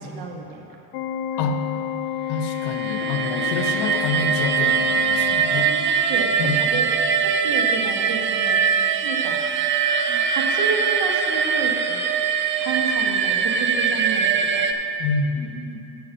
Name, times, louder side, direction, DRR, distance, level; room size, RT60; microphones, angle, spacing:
voice 1, 0.2-0.6 1.3-1.5 3.0-3.1 3.4-3.5 4.7-4.8 5.5-6.9 7.2-8.6 9.0-9.4 9.9-12.0 12.6-14.7, right 4 dB, 65° right, 1 dB, 1.5 m, -31 dB
Organ, 0.9-6.0, left 10 dB, 85° left, 0.6 m, -29 dB
voice 2, 2.3-5.7 6.4-6.8 15.0-15.9, left 4 dB, 55° left, 6 dB, 1.0 m, -27 dB
sound 1, 2.5-14.7, right 6 dB, 25° right, 0.4 m, -22 dB
7.1 x 6.2 x 6.9 m, 2.8 s
supercardioid pair, 95°, 48 cm